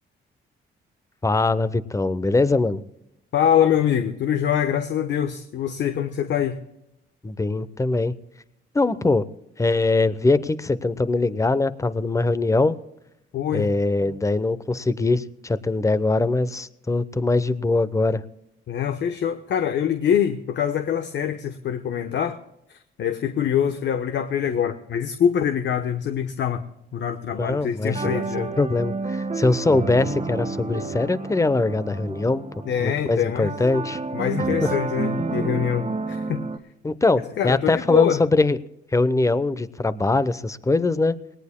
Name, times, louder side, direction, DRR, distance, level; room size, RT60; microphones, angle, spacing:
voice 1, 1.2-2.8 7.2-8.1 8.7-9.3 9.6-12.8 13.5-18.2 27.4-32.4 32.8-34.0 34.4-34.7 36.8-38.6 38.9-41.2, left 3 dB, 15° left, 16 dB, 0.8 m, -22 dB
voice 2, 3.3-6.6 13.3-13.7 18.7-22.4 22.7-26.6 26.9-28.5 32.6-33.5 34.1-36.4 37.4-38.2, left 9 dB, 65° left, 8 dB, 1.0 m, -24 dB
sound 1, 27.9-36.6, right 3 dB, 35° right, 1.5 m, -30 dB
20.0 x 18.0 x 2.2 m, 0.85 s
cardioid pair, 90°, 20 cm